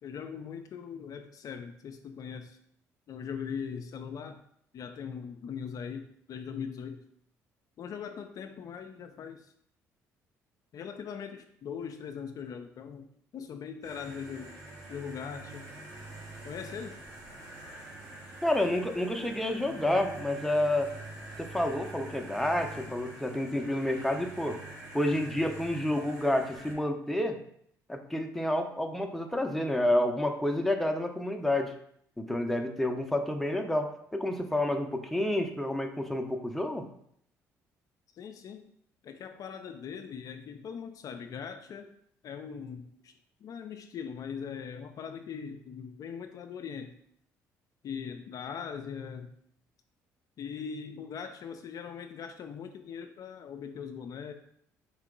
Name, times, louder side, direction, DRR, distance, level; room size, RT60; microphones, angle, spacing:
voice 1, 0.0-2.6 3.1-4.4 4.7-7.0 7.8-9.5 10.7-13.1 13.3-14.6 14.9-15.7 16.4-17.0 38.1-38.7 39.0-41.9 42.2-43.1 43.4-47.0 47.8-49.3 50.4-54.3, left 7 dB, 55° left, 6 dB, 0.4 m, -40 dB
sound 1, 13.8-26.7, right 2 dB, 55° right, 1.9 m, -45 dB
voice 2, 18.4-20.9 21.4-24.6 24.9-27.4 27.9-31.7 32.2-36.9, left 1 dB, 5° left, 4 dB, 0.7 m, -29 dB
4.4 x 2.8 x 3.8 m, 0.67 s
hypercardioid pair, 60°, 7 cm